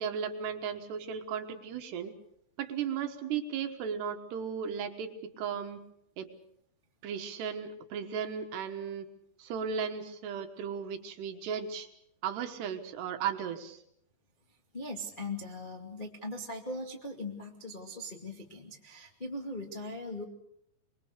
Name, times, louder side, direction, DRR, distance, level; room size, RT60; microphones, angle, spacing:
voice 1, 0.0-2.1 2.6-5.8 6.2-6.3 7.0-9.1 9.4-11.9 12.2-13.8, right 7 dB, 70° right, 7 dB, 3.3 m, -35 dB
voice 2, 14.7-20.2, left 1 dB, 25° left, 1 dB, 1.1 m, -40 dB
24.5 x 23.0 x 6.6 m, 0.75 s
omnidirectional pair, 5.3 m